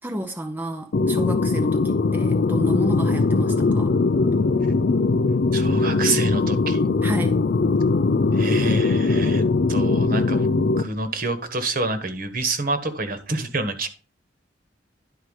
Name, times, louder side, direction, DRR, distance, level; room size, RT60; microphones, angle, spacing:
voice 1, 0.0-4.0 7.0-7.4, right 1 dB, 10° right, 0.7 m, -31 dB
sound 1, 0.9-10.8, left 3 dB, 50° left, 0.4 m, -20 dB
voice 2, 5.5-6.8 8.3-9.4 9.7-10.5 10.8-13.9, right 3 dB, 50° right, 1.5 m, -27 dB
11.0 x 4.6 x 6.5 m
head